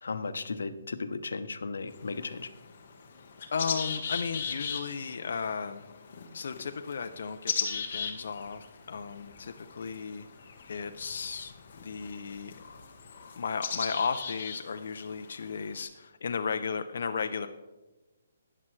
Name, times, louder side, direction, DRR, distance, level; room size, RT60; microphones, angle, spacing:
voice 1, 0.0-2.5, left 4 dB, 85° left, 11 dB, 0.8 m, -35 dB
sound 1, 1.9-15.8, left 6 dB, 35° left, 1.1 m, -39 dB
voice 2, 3.5-5.8 6.3-10.3 10.7-11.5 11.8-12.5 13.4-17.5, left 5 dB, 50° left, 7 dB, 0.4 m, -35 dB
13.5 x 9.6 x 3.1 m, 1.1 s
hypercardioid pair, 180°, 0 cm